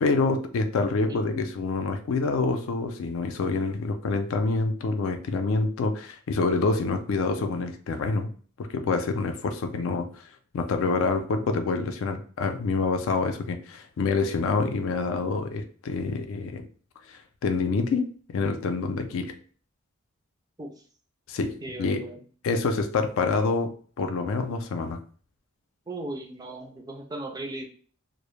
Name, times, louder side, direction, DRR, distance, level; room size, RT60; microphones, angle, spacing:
voice 1, 0.0-8.3 8.6-10.2 10.5-16.7 17.1-19.4 21.3-22.1 22.4-25.0, left 4 dB, 75° left, 7 dB, 0.4 m, -27 dB
voice 2, 21.6-22.2 25.9-27.7, right 1 dB, 20° right, 3 dB, 0.3 m, -37 dB
2.0 x 2.0 x 3.0 m, 0.43 s
head